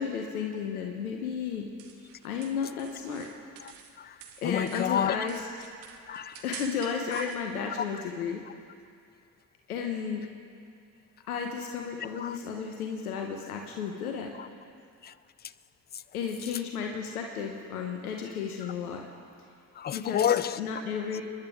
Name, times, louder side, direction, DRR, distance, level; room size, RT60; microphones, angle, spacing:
voice 1, 0.0-1.7 2.2-3.3 4.4-5.4 6.4-8.4 9.7-10.2 11.3-14.3 16.1-19.1 19.9-20.2 20.6-21.2, left 6 dB, 90° left, 1.0 m, -33 dB
sound 1, 1.5-7.4, right 8 dB, 80° right, 1.2 m, -48 dB
voice 2, 3.6-4.2 4.4-5.3 6.1-6.4 7.1-7.2 7.8-7.9 12.0-12.4 14.4-14.5 15.0-15.1 15.9-16.0 19.7-20.7, left 9 dB, 25° left, 0.4 m, -30 dB
28.5 x 10.5 x 3.6 m
hypercardioid pair, 50°, 43 cm